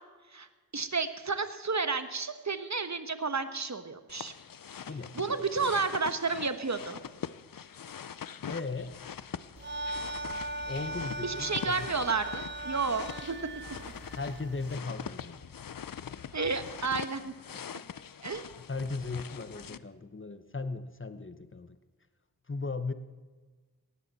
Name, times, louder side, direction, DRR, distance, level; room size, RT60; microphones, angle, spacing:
voice 1, 0.7-4.3 5.1-7.0 11.2-13.3 16.3-17.3 18.2-18.4, right 4 dB, 45° right, 10 dB, 1.3 m, -31 dB
sound 1, 4.1-19.8, left 8 dB, 60° left, 0.6 m, -43 dB
voice 2, 4.9-5.7 8.5-9.0 10.7-11.9 14.2-15.4 17.5-17.6 18.2-18.3 18.7-21.8 22.5-22.9, left 3 dB, 30° left, 11 dB, 1.1 m, -37 dB
sound 2, 9.6-14.8, right 1 dB, 30° right, 0.8 m, -39 dB
18.0 x 14.5 x 4.2 m, 1.4 s
cardioid pair, 45°, 38 cm